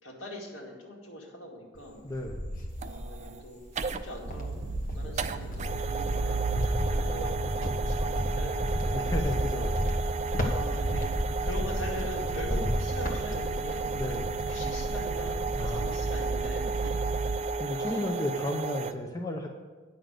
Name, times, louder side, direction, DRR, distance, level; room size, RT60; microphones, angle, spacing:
voice 1, 0.0-2.0 2.8-3.6 4.0-9.1 9.3-9.7 10.5-11.1 11.4-13.9 14.5-16.8 17.7-18.2, left 1 dB, 70° left, -2 dB, 2.3 m, -42 dB
Cricket, 1.8-3.3 3.8-16.7 17.0-17.6, equal, 45° left, 1.4 m, -33 dB
voice 2, 2.0-2.5 5.0-5.1 8.9-9.8 13.9-14.4 15.5-16.1 17.6-19.5, left 1 dB, 15° left, 1 dB, 0.7 m, -33 dB
sound 1, 2.7-18.9, right 4 dB, 35° right, 0.4 m, -34 dB
sound 2, 4.2-17.4, right 3 dB, 85° right, 0.9 m, -35 dB
9.6 x 6.1 x 6.6 m, 1.3 s
head